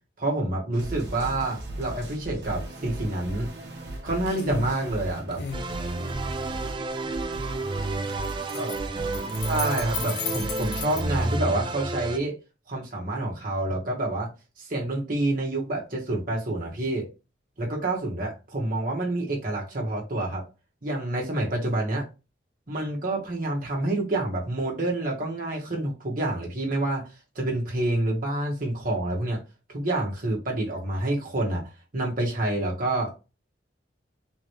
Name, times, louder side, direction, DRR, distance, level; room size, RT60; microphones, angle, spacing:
voice 1, 0.2-3.5 4.0-5.4 8.5-8.8 9.5-12.3 12.7-14.3 14.6-17.1 17.6-20.4 20.8-22.1 22.7-27.0 27.3-29.4 29.7-31.6 31.9-33.1, right 2 dB, 50° right, 1.3 m, -28 dB
sound 1, 0.7-11.4, right 1 dB, 65° right, 1.1 m, -37 dB
sound 2, 3.7-3.9 4.3-4.8 5.3-7.2 8.0-11.0, left 8 dB, 65° left, 0.5 m, -36 dB
sound 3, 5.5-12.2, right 3 dB, 25° right, 0.4 m, -31 dB
3.7 x 3.1 x 3.0 m
head